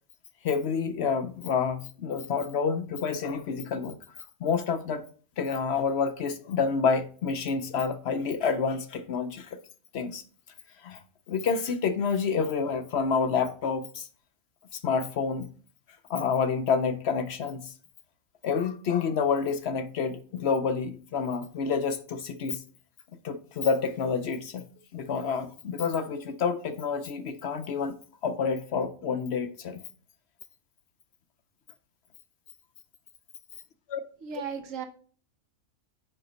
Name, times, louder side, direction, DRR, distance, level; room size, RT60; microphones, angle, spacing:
voice 1, 0.4-4.0 4.4-5.0 5.4-9.6 9.9-10.2 10.8-11.0 11.3-14.1 14.7-15.5 16.1-17.7 18.4-22.6 23.2-24.6 24.9-27.9 28.2-29.8 33.9-34.0, left 5 dB, 60° left, 0.8 m, -28 dB
voice 2, 34.2-34.9, right 7 dB, 65° right, 1.4 m, -35 dB
9.9 x 3.9 x 4.1 m
omnidirectional pair, 1.4 m